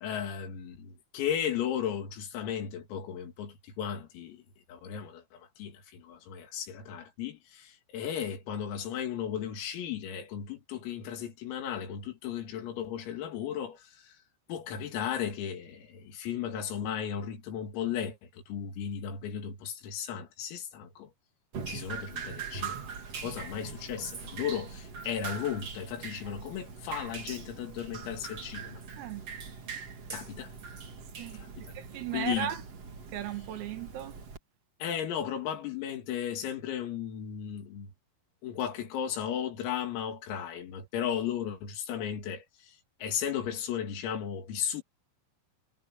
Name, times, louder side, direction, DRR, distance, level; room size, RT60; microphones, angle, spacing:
voice 1, 0.0-4.4 4.7-14.2 14.5-21.1 21.7-22.9 23.1-28.8 30.1-30.5 31.4-31.5 32.1-32.5 34.8-37.9 38.4-44.8, left 9 dB, 85° left, 5.7 m, -35 dB
Drip, 21.5-34.4, right 5 dB, 40° right, 2.7 m, -42 dB
voice 2, 29.0-29.3 31.2-32.6 33.1-34.2, right 12 dB, 90° right, 5.0 m, -37 dB
omnidirectional pair, 5.9 m